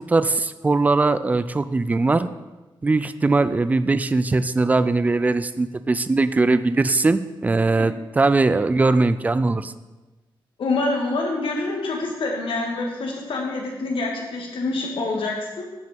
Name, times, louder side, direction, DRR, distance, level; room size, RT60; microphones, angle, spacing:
voice 1, 0.0-2.3 2.8-9.7, right 3 dB, 15° right, 13 dB, 0.4 m, -20 dB
voice 2, 10.6-15.7, left 3 dB, 75° left, 0 dB, 2.2 m, -26 dB
12.0 x 5.3 x 5.3 m, 1.1 s
wide cardioid pair, 155°, 9 cm